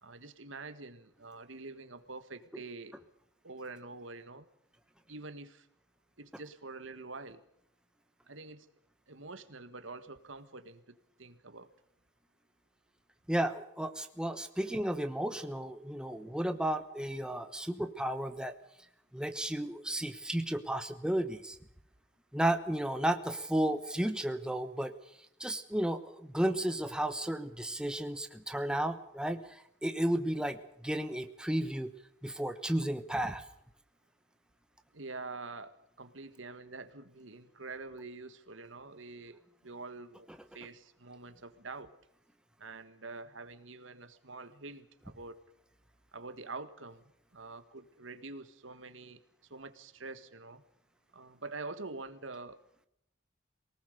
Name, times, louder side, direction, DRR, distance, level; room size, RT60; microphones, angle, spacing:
voice 1, 0.0-2.9 3.4-4.4 5.1-5.7 6.2-7.4 8.3-8.7 9.1-11.7 34.9-40.3 40.5-41.9 42.6-45.4 46.1-49.2 49.5-50.6 51.1-52.6, right 3 dB, 75° right, 10 dB, 1.7 m, -46 dB
voice 2, 13.3-18.5 19.1-21.6 22.3-24.9 25.4-31.9 32.2-33.4, right 1 dB, 5° right, 8 dB, 1.1 m, -33 dB
24.0 x 19.0 x 6.8 m, 0.74 s
head